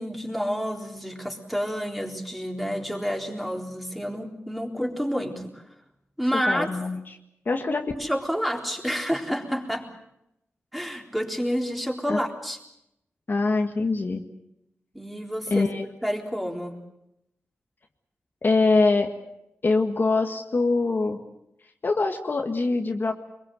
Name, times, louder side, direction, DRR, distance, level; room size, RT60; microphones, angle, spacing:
voice 1, 0.0-5.6 6.2-6.7 8.0-9.9 10.7-12.6 14.9-16.8, equal, ahead, 1 dB, 3.8 m, -29 dB
voice 2, 6.3-7.0 7.5-7.9 12.1-12.2 13.3-14.2 15.5-15.9 18.4-19.1 19.6-21.2 21.8-23.1, left 3 dB, 45° left, 3 dB, 1.7 m, -23 dB
24.0 x 22.5 x 7.8 m, 0.84 s
wide cardioid pair, 100°, 5 cm